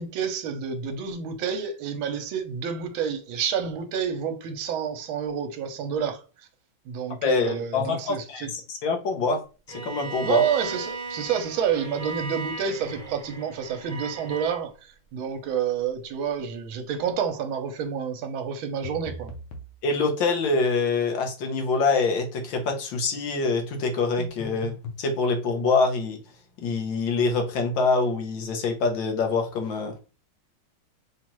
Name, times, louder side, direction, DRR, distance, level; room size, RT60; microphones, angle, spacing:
voice 1, 0.0-6.2 6.9-8.5 10.2-19.3, right 7 dB, 75° right, 1.5 m, -29 dB
voice 2, 7.2-9.4 9.7-10.4 19.8-26.2 26.6-30.0, left 4 dB, 70° left, 1.6 m, -25 dB
Bowed string instrument, 9.7-14.6, right 3 dB, 25° right, 0.9 m, -36 dB
sound 1, 18.8-19.7 24.2-25.1, left 2 dB, 90° left, 1.7 m, -38 dB
5.8 x 2.4 x 3.0 m
omnidirectional pair, 2.3 m